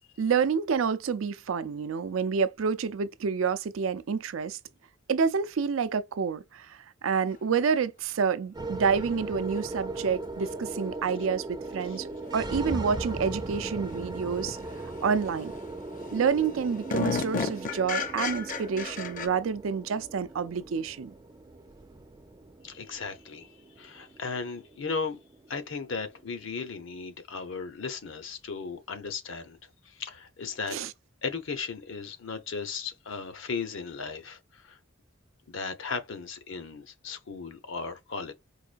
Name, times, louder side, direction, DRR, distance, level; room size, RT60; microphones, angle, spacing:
voice 1, 0.2-4.6 5.1-12.1 12.3-14.6 15.0-15.5 16.1-21.1 30.7-30.9, right 6 dB, 85° right, 0.4 m, -28 dB
sound 1, 8.5-26.9, right 2 dB, 20° right, 0.4 m, -39 dB
sound 2, 11.6-11.7 14.5-14.6 15.1-15.5 16.0-16.1 16.3-19.3, left 4 dB, 40° left, 0.5 m, -32 dB
voice 2, 22.6-23.5 23.8-25.2 25.5-29.6 29.8-30.8 31.2-34.8 35.5-38.3, left 5 dB, 70° left, 0.8 m, -36 dB
4.7 x 2.3 x 2.5 m
head